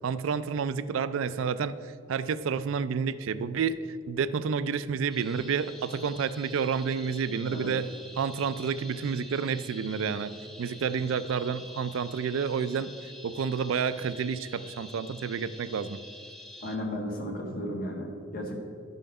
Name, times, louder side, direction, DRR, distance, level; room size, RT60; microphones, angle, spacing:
voice 1, 0.0-1.7 2.1-7.9 8.2-10.3 10.6-12.9 13.2-16.0, right 6 dB, 75° right, 14 dB, 0.4 m, -30 dB
sound 1, 5.1-16.8, left 1 dB, ahead, 0.7 m, -47 dB
voice 2, 16.6-18.5, equal, 45° left, 0 dB, 1.6 m, -34 dB
11.0 x 5.6 x 5.3 m, 2.3 s
head